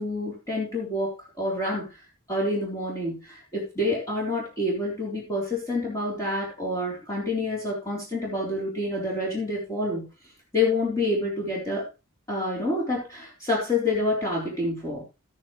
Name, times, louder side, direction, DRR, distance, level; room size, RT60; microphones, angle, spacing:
voice 1, 0.0-2.0 2.3-10.0 10.5-11.9 12.3-15.0, left 2 dB, 15° left, -5 dB, 3.9 m, -28 dB
13.5 x 9.7 x 3.2 m, 0.28 s
head